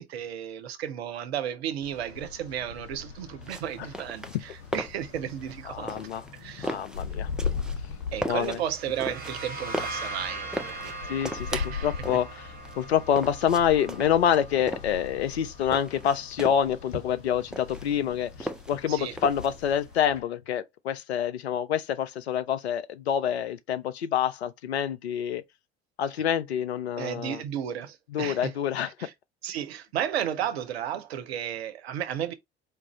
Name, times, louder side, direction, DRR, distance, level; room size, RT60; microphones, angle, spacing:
voice 1, 0.0-6.0 6.3-6.8 8.1-11.2 11.5-11.9 18.9-19.1 27.0-28.5 29.0-29.1 29.4-32.3, right 10 dB, 75° right, 0.6 m, -33 dB
sound 1, 1.8-20.2, left 6 dB, 65° left, 1.4 m, -40 dB
sound 2, 3.4-20.0, equal, ahead, 0.4 m, -38 dB
voice 2, 5.7-6.2 6.6-7.3 8.3-8.6 11.1-11.5 11.8-12.5 12.8-25.4 26.0-27.4 28.1-29.1, left 9 dB, 80° left, 0.5 m, -27 dB
sound 3, 8.6-16.1, right 2 dB, 30° right, 1.4 m, -40 dB
4.5 x 2.5 x 2.9 m
figure-of-eight pair, 55°, 32 cm